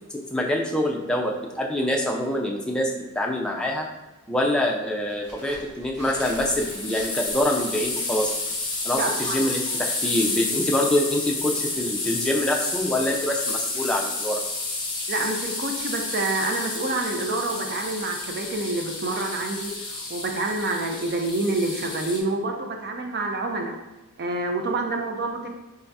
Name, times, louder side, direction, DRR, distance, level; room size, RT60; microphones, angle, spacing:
voice 1, 0.1-3.9 4.3-8.3 8.8-14.4, left 1 dB, 5° left, -1 dB, 0.4 m, -25 dB
sound 1, 5.1-9.1 9.4-9.5 9.8-12.0 12.4-13.8, right 1 dB, 90° right, 1.3 m, -46 dB
sound 2, 6.2-22.2, left 3 dB, 20° left, 1.0 m, -30 dB
voice 2, 8.9-9.4 15.1-23.7 24.2-25.5, right 2 dB, 45° right, 3 dB, 0.6 m, -27 dB
4.7 x 2.7 x 3.4 m, 1.0 s
head